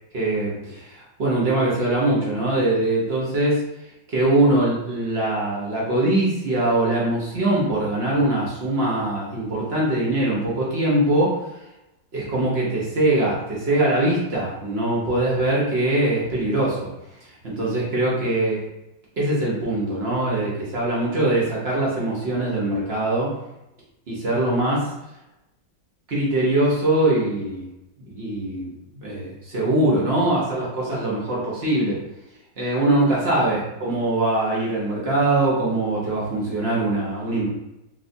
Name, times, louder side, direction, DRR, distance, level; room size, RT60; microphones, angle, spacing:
voice 1, 0.1-3.6 4.1-11.4 12.1-16.9 17.2-18.6 19.2-23.3 24.1-24.9 26.1-27.7 28.1-32.0 32.6-37.5, right 1 dB, 55° right, -5 dB, 0.7 m, -22 dB
3.2 x 2.8 x 2.6 m, 0.92 s
omnidirectional pair, 2.1 m